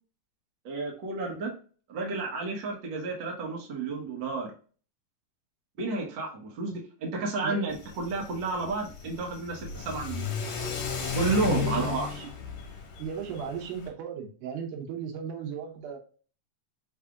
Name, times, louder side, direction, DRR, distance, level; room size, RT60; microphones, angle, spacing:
voice 1, 0.6-1.5 1.9-4.5 5.8-10.3 11.1-12.1, right 3 dB, 55° right, -1 dB, 1.3 m, -31 dB
Car / Accelerating revving vroom, 7.7-13.9, left 6 dB, 65° left, 2.0 m, -35 dB
voice 2, 11.5-12.3 13.0-16.0, right 7 dB, 85° right, 2 dB, 2.5 m, -36 dB
5.5 x 3.6 x 2.3 m, 0.40 s
omnidirectional pair, 3.6 m